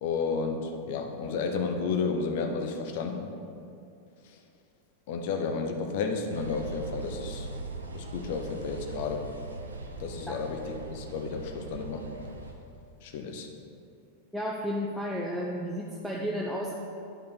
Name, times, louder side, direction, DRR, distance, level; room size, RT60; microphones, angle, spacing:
voice 1, 0.0-3.3 5.1-7.5 7.9-9.2 10.0-10.6 10.9-12.1 13.0-13.5, left 5 dB, 50° left, 4 dB, 0.9 m, -32 dB
sound 1, 6.3-12.5, right 3 dB, 75° right, 0.7 m, -40 dB
voice 2, 14.3-16.7, equal, ahead, -4 dB, 0.7 m, -32 dB
10.0 x 5.2 x 4.3 m, 2.5 s
figure-of-eight pair, 90°, 0 cm